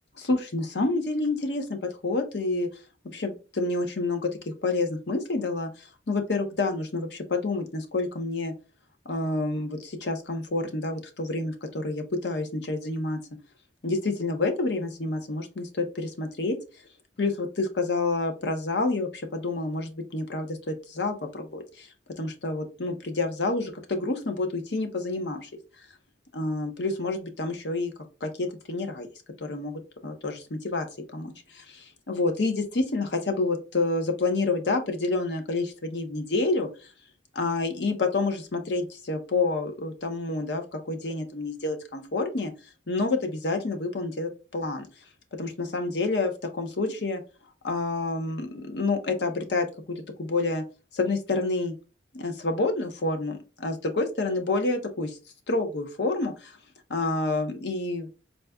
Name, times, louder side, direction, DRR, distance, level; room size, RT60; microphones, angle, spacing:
voice 1, 0.2-1.6 2.0-2.7 3.0-4.3 4.6-5.7 6.1-8.5 9.1-13.2 13.8-16.6 17.2-21.9 22.2-25.5 26.3-27.9 28.2-29.1 29.4-30.9 31.1-36.7 37.3-42.5 42.9-44.9 45.4-47.2 47.6-50.6 50.9-51.7 52.1-55.2 55.5-56.6 56.9-58.1, left 3 dB, 65° left, 5 dB, 0.8 m, -28 dB
4.0 x 2.3 x 3.5 m, 0.33 s
head